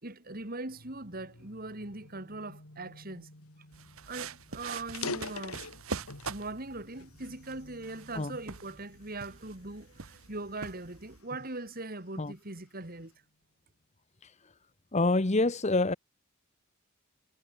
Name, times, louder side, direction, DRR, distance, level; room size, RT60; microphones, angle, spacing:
voice 1, 0.0-3.3 4.1-5.6 6.3-13.1, right 2 dB, 45° right, 2.9 m, -41 dB
sound 1, 0.7-13.4, left 1 dB, 70° left, 3.1 m, -59 dB
sound 2, 3.7-11.2, right 5 dB, 75° right, 1.5 m, -44 dB
sound 3, 3.8-3.9 4.2-4.3 4.8-6.4 6.9-8.2 8.8-9.1 9.7-11.7, left 4 dB, 90° left, 2.3 m, -41 dB
voice 2, 14.9-15.9, left 2 dB, 30° left, 1.0 m, -26 dB
head